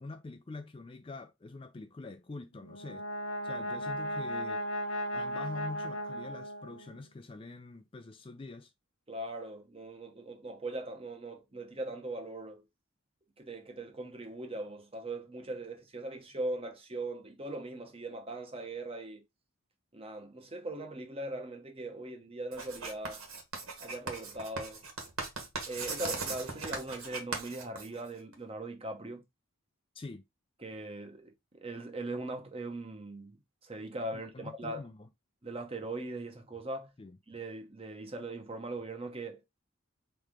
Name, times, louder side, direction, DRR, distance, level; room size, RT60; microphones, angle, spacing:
voice 1, 0.0-3.1 3.4-4.6 5.1-8.7 29.9-30.2 34.1-35.1 37.0-37.2, left 3 dB, 25° left, 0.3 m, -45 dB
Brass instrument, 2.6-7.0, equal, 65° left, 0.9 m, -36 dB
voice 2, 9.1-12.6 13.4-19.2 19.9-23.2 23.8-24.8 25.7-29.2 30.6-34.9 35.4-36.9 37.3-39.6, right 2 dB, 25° right, 1.0 m, -40 dB
Writing, 22.5-28.3, right 4 dB, 90° right, 1.7 m, -39 dB
4.3 x 3.3 x 3.6 m
head